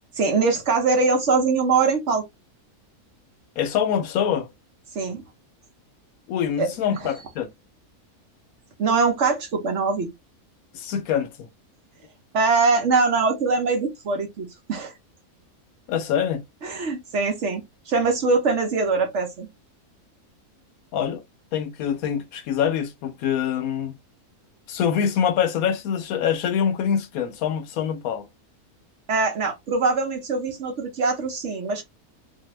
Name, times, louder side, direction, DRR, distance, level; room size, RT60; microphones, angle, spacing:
voice 1, 0.2-2.2 4.9-5.2 6.6-6.7 8.8-10.1 12.3-14.9 16.6-19.5 29.1-31.8, right 4 dB, 60° right, 1.0 m, -22 dB
voice 2, 3.6-4.5 6.3-7.5 10.7-11.5 15.9-16.4 20.9-21.2 21.5-24.0 24.7-28.3, left 8 dB, 75° left, 1.0 m, -25 dB
2.7 x 2.5 x 3.0 m
omnidirectional pair, 1.6 m